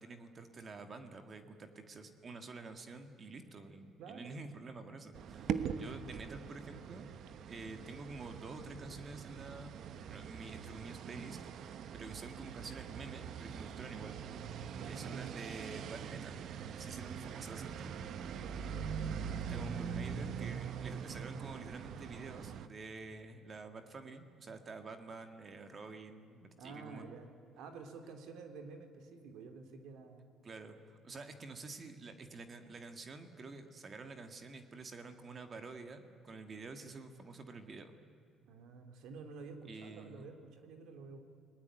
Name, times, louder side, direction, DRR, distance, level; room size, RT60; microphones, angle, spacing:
voice 1, 0.0-7.1 7.5-9.7 10.1-14.2 14.9-16.4 16.8-18.1 19.5-27.1 30.4-38.0 39.6-40.3, right 3 dB, 30° right, 7 dB, 1.9 m, -49 dB
voice 2, 4.0-4.5 5.4-6.5 14.8-15.2 18.3-18.7 26.6-30.2 38.5-41.3, right 4 dB, 75° right, 6 dB, 3.2 m, -50 dB
sound 1, 5.1-22.7, right 7 dB, 60° right, 1.1 m, -42 dB
30.0 x 19.5 x 9.2 m, 2.5 s
cardioid pair, 145°, 0 cm